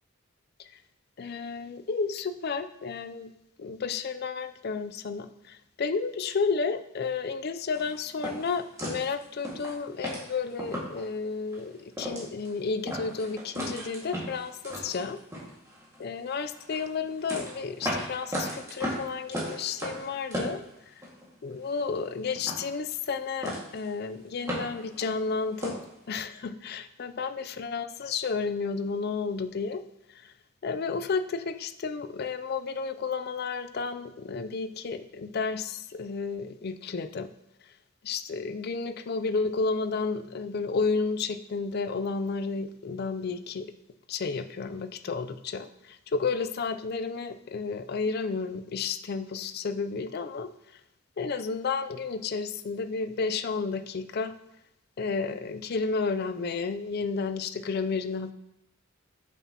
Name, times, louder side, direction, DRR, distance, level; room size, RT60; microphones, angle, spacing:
voice 1, 1.2-3.3 3.6-15.2 16.0-20.9 21.4-25.8 26.1-29.8 30.1-30.3 30.6-37.3 38.0-43.7 44.1-50.5 51.2-54.3 55.0-58.3, left 4 dB, 50° left, 10 dB, 0.4 m, -32 dB
sound 1, 7.7-11.1 11.5-11.6 11.9-12.5 12.9-16.0 16.5-21.3 21.5-22.1 22.3-23.2 23.4-23.9 24.2-25.9, equal, 15° right, 1.8 m, -36 dB
8.1 x 7.0 x 2.9 m, 0.85 s
head